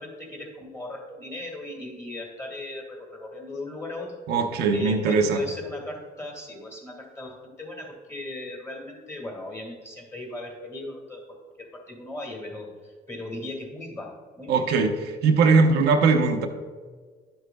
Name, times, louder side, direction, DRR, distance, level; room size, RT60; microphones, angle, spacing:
voice 1, 0.0-4.2 4.7-11.3 11.6-14.7, left 2 dB, 15° left, 0 dB, 2.1 m, -37 dB
voice 2, 4.3-5.4 14.5-14.9 15.2-16.5, right 4 dB, 75° right, 4 dB, 0.8 m, -20 dB
11.0 x 7.9 x 2.3 m, 1.5 s
cardioid pair, 110°, 17 cm